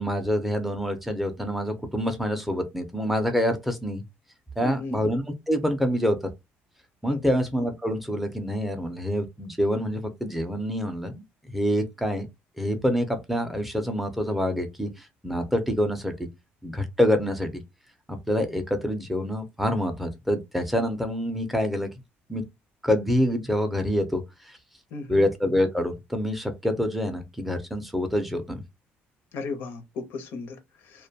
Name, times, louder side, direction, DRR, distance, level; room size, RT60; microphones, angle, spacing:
voice 1, 0.0-4.0 4.6-6.2 7.0-11.2 11.5-12.3 12.6-16.3 16.6-17.6 18.1-21.9 22.3-22.4 22.8-24.6 25.1-28.6, equal, 5° right, 0.4 m, -26 dB
voice 2, 4.6-5.0 7.1-7.4 24.9-25.2 29.3-31.1, left 3 dB, 65° left, 0.6 m, -35 dB
2.5 x 2.1 x 2.7 m
cardioid pair, 160°, 4 cm